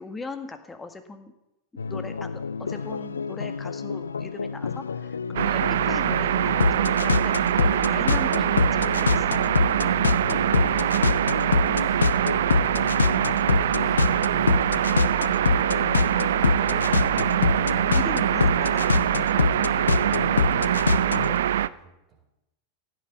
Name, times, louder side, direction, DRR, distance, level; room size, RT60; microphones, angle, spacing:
voice 1, 0.0-1.3 1.9-7.3 7.6-9.4 17.8-19.1 21.2-21.4, left 3 dB, 15° left, 8 dB, 1.7 m, -39 dB
sound 1, 1.8-21.4, left 5 dB, 75° left, 0.4 m, -26 dB
sound 2, 5.4-21.7, right 11 dB, 60° right, 0.5 m, -24 dB
voice 2, 9.8-9.9, right 4 dB, 30° right, 4 dB, 4.2 m, -51 dB
15.5 x 9.1 x 8.3 m, 0.91 s
figure-of-eight pair, 90°, 0 cm